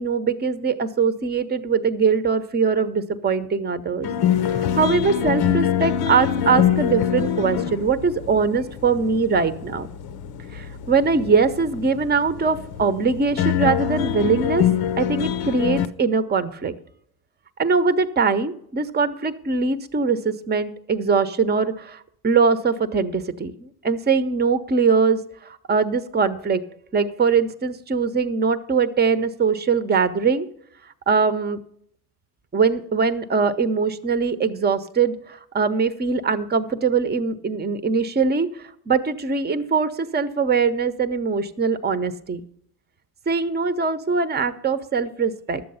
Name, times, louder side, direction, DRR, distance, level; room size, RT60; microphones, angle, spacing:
voice 1, 0.0-4.1 4.5-9.9 10.5-14.7 15.0-16.7 17.6-26.6 26.9-30.5 31.1-31.6 32.5-42.4 43.3-45.6, right 5 dB, 20° right, 12 dB, 0.8 m, -22 dB
sound 1, 4.0-15.9, left 9 dB, 60° left, 0.7 m, -25 dB
11.0 x 7.7 x 5.6 m, 0.69 s
supercardioid pair, 80°, 44 cm